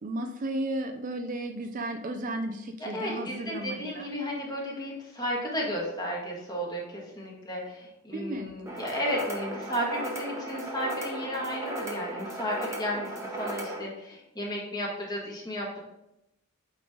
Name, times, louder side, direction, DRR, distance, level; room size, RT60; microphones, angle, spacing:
voice 1, 0.0-4.1 8.1-8.5, right 1 dB, 40° right, 5 dB, 0.4 m, -34 dB
voice 2, 2.8-15.8, equal, 20° left, -3 dB, 1.6 m, -33 dB
sound 1, 8.7-13.8, right 1 dB, 15° right, 1.0 m, -36 dB
8.6 x 3.2 x 3.6 m, 0.87 s
head